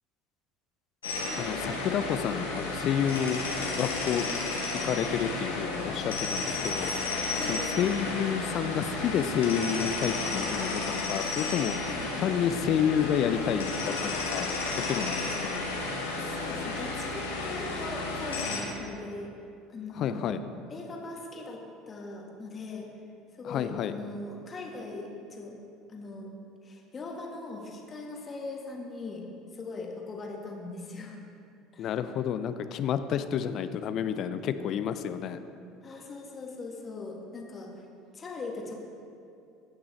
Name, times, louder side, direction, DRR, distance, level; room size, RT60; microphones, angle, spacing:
sound 1, 1.0-18.6, left 3 dB, 80° left, 1.3 m, -32 dB
voice 1, 1.4-3.4 3.8-4.3 4.8-6.9 7.5-11.7 12.2-15.6 20.0-20.4 23.4-23.9 31.8-35.4, left 8 dB, 50° left, 11 dB, 0.4 m, -30 dB
voice 2, 7.4-7.7 11.9-12.1 16.1-19.3 19.7-20.3 20.7-22.9 23.4-25.6 25.9-26.3 26.6-29.2 29.5-31.2 31.7-31.9 35.8-37.8 38.1-38.7, left 3 dB, 30° left, 0 dB, 1.5 m, -40 dB
15.0 x 6.1 x 3.2 m, 2.5 s
figure-of-eight pair, 65°, 0 cm